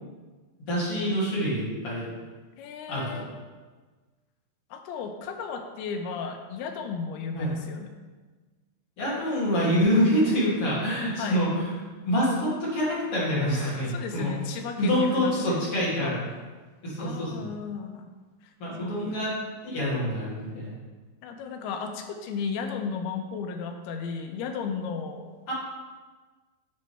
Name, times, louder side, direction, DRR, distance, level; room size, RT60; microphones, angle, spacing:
voice 1, 0.7-2.1 2.9-3.1 7.3-7.5 9.0-11.8 12.0-14.3 14.8-16.2 16.8-17.5 18.6-19.3 19.6-20.7 25.5-25.6, equal, 40° left, -7 dB, 3.0 m, -26 dB
voice 2, 2.6-3.3 4.7-7.9 11.2-11.4 13.8-16.2 17.0-18.1 18.4-18.5 18.8-19.1 21.2-25.3, left 5 dB, 85° left, 5 dB, 2.7 m, -34 dB
9.9 x 6.7 x 3.3 m, 1.3 s
omnidirectional pair, 4.6 m